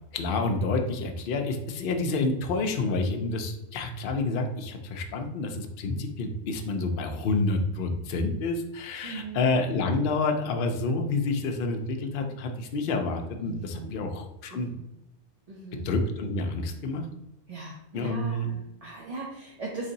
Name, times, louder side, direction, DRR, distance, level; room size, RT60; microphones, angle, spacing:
voice 1, 0.1-14.7 15.8-17.1 17.9-18.5, left 3 dB, 60° left, 4 dB, 0.7 m, -28 dB
voice 2, 9.0-9.5 13.4-14.0 14.5-14.8 15.5-15.9 17.5-19.9, right 3 dB, 40° right, -3 dB, 0.6 m, -39 dB
3.2 x 2.7 x 3.9 m, 0.88 s
omnidirectional pair, 1.2 m